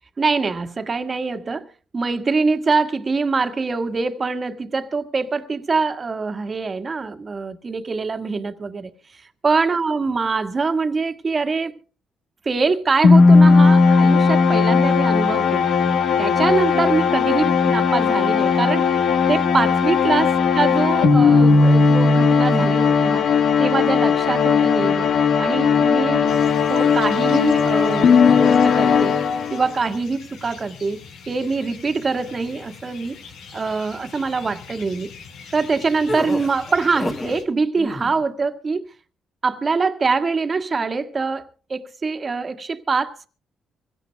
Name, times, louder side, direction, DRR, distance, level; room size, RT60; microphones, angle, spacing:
voice 1, 0.2-1.7 1.9-11.8 12.5-15.7 16.2-18.9 19.3-23.3 23.6-25.1 25.4-26.4 26.7-29.2 29.5-33.2 33.5-35.1 35.5-38.9 39.4-43.3, right 4 dB, 35° right, 1.7 m, -24 dB
sound 1, 13.0-29.8, left 5 dB, 65° left, 1.5 m, -16 dB
sound 2, 26.3-37.4, left 5 dB, 80° left, 4.8 m, -42 dB
sound 3, 36.1-37.4 37.7-38.2, left 1 dB, 20° left, 1.8 m, -28 dB
25.0 x 17.0 x 2.3 m
cardioid pair, 90°, 0 cm